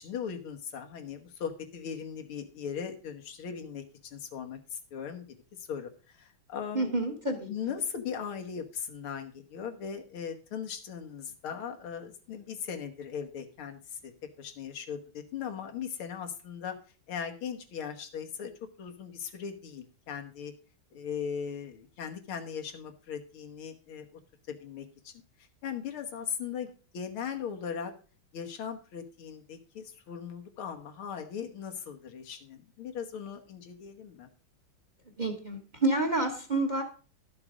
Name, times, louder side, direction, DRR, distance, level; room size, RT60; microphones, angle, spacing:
voice 1, 0.0-5.2 5.6-7.0 7.5-14.1 14.4-16.8 17.1-18.5 18.8-20.5 20.9-24.1 24.5-25.1 25.6-27.9 28.3-34.3, left 7 dB, 85° left, 5 dB, 2.2 m, -38 dB
voice 2, 6.7-7.8 35.2-36.8, right 2 dB, 25° right, 5 dB, 1.2 m, -29 dB
12.0 x 7.1 x 4.9 m, 0.37 s
omnidirectional pair, 2.3 m